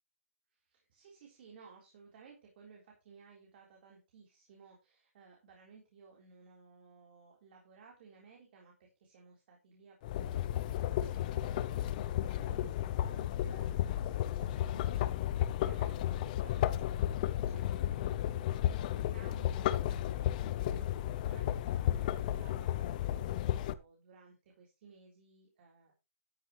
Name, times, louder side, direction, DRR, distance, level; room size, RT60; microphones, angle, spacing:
voice 1, 0.7-18.2 18.5-25.9, right 4 dB, 45° right, -1 dB, 3.7 m, -59 dB
sound 1, 10.0-23.7, left 12 dB, 35° left, 0.7 m, -33 dB
12.5 x 10.0 x 3.1 m, 0.26 s
hypercardioid pair, 160°, 8 cm